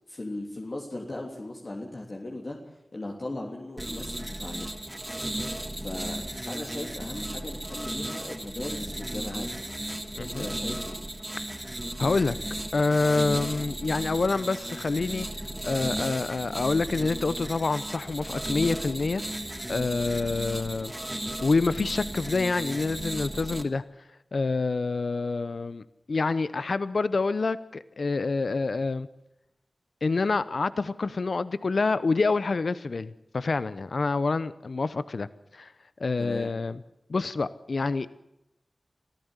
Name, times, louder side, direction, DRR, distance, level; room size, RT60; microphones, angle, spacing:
voice 1, 0.1-4.7 5.8-9.5 10.2-11.0 36.2-36.5, left 2 dB, 55° left, 0 dB, 3.2 m, -38 dB
sound 1, 3.8-23.6, right 1 dB, 20° right, 2.7 m, -35 dB
voice 2, 10.1-10.5 12.0-12.4 12.7-15.3 15.6-19.2 19.7-20.9 21.4-23.8 24.3-29.1 30.0-35.3 35.5-35.7 36.0-36.8 37.1-38.2, left 3 dB, 75° left, 15 dB, 0.7 m, -27 dB
24.0 x 15.0 x 8.1 m, 0.87 s
cardioid pair, 40°, 0 cm